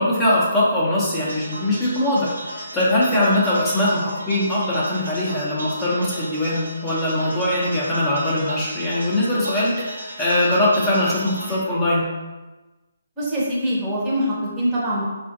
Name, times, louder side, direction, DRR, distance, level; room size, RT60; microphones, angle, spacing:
voice 1, 0.0-12.1, left 1 dB, 10° left, -8 dB, 0.8 m, -21 dB
sound 1, 1.3-11.6, right 1 dB, 85° right, 1.1 m, -36 dB
voice 2, 13.2-15.0, equal, 15° right, -6 dB, 0.9 m, -23 dB
4.6 x 2.5 x 2.6 m, 1.2 s
hypercardioid pair, 160°, 0 cm